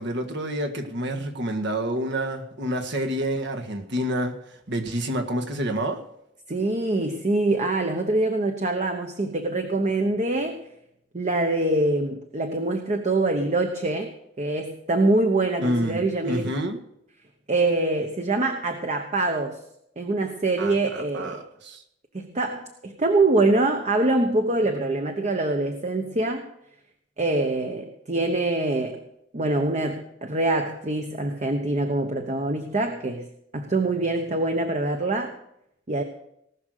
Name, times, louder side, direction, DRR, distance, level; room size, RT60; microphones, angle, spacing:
voice 1, 0.0-4.4 4.7-6.0 15.6-16.8 20.6-21.8, right 1 dB, 65° right, 5 dB, 1.7 m, -28 dB
voice 2, 6.5-10.6 11.1-14.1 14.4-16.5 17.5-19.6 20.0-21.4 22.1-26.4 27.2-29.0 29.3-33.3 33.5-35.3 35.9-36.0, right 2 dB, 40° right, 4 dB, 1.0 m, -24 dB
19.0 x 6.4 x 6.6 m, 0.77 s
head